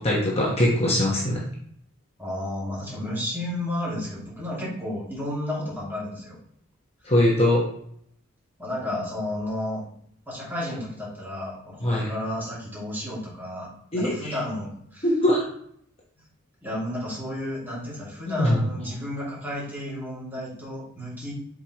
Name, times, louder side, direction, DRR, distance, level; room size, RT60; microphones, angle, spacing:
voice 1, 0.0-1.4 7.0-7.6 11.8-12.1 13.9-14.3 15.0-15.4 18.4-18.6, left 1 dB, 30° left, -3 dB, 1.1 m, -21 dB
voice 2, 2.2-6.4 8.6-9.9 10.3-15.1 16.6-21.3, left 1 dB, 10° right, -7 dB, 2.4 m, -32 dB
6.9 x 4.9 x 3.0 m, 0.67 s
head